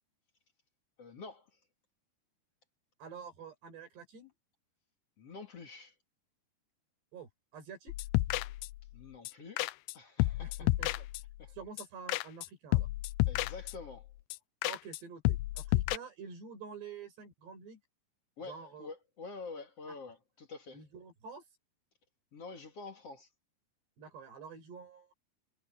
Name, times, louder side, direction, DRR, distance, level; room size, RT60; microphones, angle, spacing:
voice 1, 1.0-1.5 5.2-5.9 8.9-9.6 9.9-10.7 11.4-11.5 13.3-14.1 18.4-20.8 22.3-23.3, left 4 dB, 40° left, 3.1 m, -47 dB
voice 2, 3.0-4.3 7.1-7.9 10.4-11.0 11.5-12.9 14.6-17.8 18.4-18.9 20.7-21.4 24.0-25.1, right 6 dB, 90° right, 8.2 m, -48 dB
sound 1, 7.9-8.9 9.3-9.4 9.6-9.9 10.2-11.4 11.8-12.5 12.7-14.0 14.3-14.4 14.6-15.0 15.3-16.0, left 19 dB, 85° left, 2.7 m, -31 dB
omnidirectional pair, 4.7 m